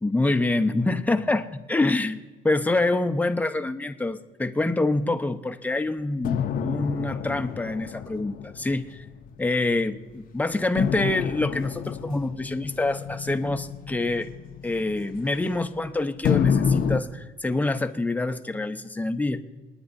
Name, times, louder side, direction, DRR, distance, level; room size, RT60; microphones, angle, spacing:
voice 1, 0.0-9.0 9.4-14.3 14.6-19.4, left 2 dB, 10° left, 8 dB, 0.7 m, -26 dB
sound 1, 6.2-9.9 10.8-15.8 16.2-17.0, left 7 dB, 55° left, 0.7 m, -29 dB
27.0 x 9.9 x 2.6 m, 1.3 s
cardioid pair, 110°, 17 cm